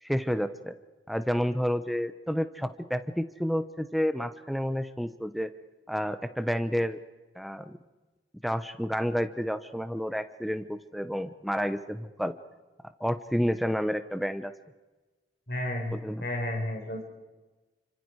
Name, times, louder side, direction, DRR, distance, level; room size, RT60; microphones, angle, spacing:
voice 1, 0.0-0.7 1.1-5.5 5.9-7.0 7.4-7.8 8.4-12.3 13.0-14.5 15.9-16.2, equal, ahead, 10 dB, 1.0 m, -30 dB
voice 2, 15.5-17.0, left 1 dB, 55° left, 1 dB, 5.0 m, -32 dB
30.0 x 25.5 x 4.9 m, 1.2 s
head